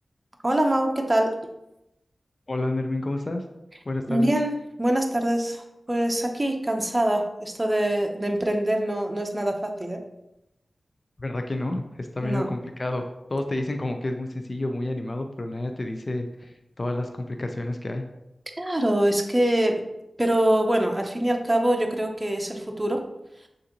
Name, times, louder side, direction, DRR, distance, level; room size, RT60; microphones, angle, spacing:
voice 1, 0.4-1.4 4.1-10.0 12.2-12.5 18.6-19.8 20.2-23.0, right 1 dB, 20° right, 3 dB, 0.6 m, -24 dB
voice 2, 2.5-3.4 3.9-4.3 11.2-18.1, left 2 dB, 45° left, 5 dB, 0.4 m, -30 dB
6.4 x 2.6 x 2.9 m, 0.89 s
cardioid pair, 50°, 0 cm